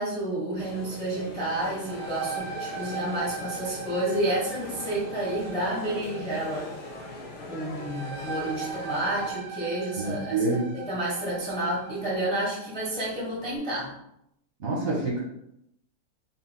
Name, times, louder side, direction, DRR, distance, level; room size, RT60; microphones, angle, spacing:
voice 1, 0.0-6.7 7.0-7.1 7.4-13.9, right 1 dB, 5° left, -7 dB, 0.4 m, -30 dB
sound 1, 0.6-9.3, left 2 dB, 70° left, 1.5 m, -41 dB
sound 2, 1.7-13.1, right 6 dB, 75° right, 1.3 m, -40 dB
voice 2, 10.0-10.8 14.6-15.2, right 2 dB, 35° right, -6 dB, 1.4 m, -27 dB
4.0 x 4.0 x 2.2 m, 0.80 s
omnidirectional pair, 2.4 m